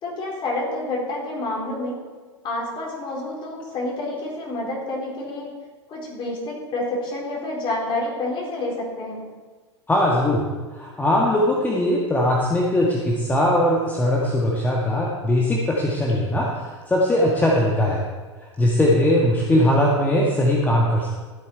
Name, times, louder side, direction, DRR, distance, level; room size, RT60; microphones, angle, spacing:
voice 1, 0.0-2.0 2.4-5.5 5.9-9.3, left 2 dB, 35° left, -2 dB, 4.1 m, -28 dB
voice 2, 9.9-10.4 10.7-18.0 18.6-21.1, left 1 dB, 10° left, -3 dB, 1.6 m, -20 dB
14.0 x 8.7 x 4.6 m, 1.4 s
figure-of-eight pair, 85°, 15 cm